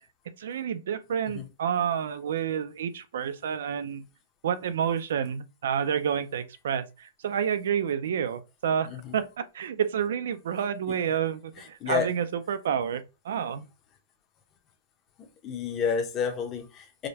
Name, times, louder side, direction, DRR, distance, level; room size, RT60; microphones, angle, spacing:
voice 1, 0.4-4.0 4.4-13.6, right 8 dB, 60° right, 0.5 m, -29 dB
voice 2, 11.6-12.1 15.4-17.1, left 6 dB, 15° left, 0.7 m, -30 dB
4.9 x 2.2 x 2.8 m
supercardioid pair, 180°, 0 cm